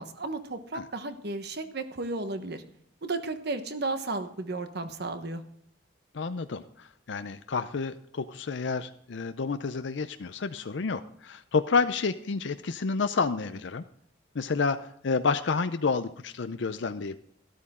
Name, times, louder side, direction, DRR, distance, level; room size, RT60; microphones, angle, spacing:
voice 1, 0.0-2.6 3.0-5.4, right 3 dB, 60° right, 9 dB, 1.2 m, -34 dB
voice 2, 6.1-13.8 14.3-17.2, left 4 dB, 70° left, 10 dB, 0.5 m, -29 dB
13.0 x 12.5 x 3.7 m, 0.66 s
head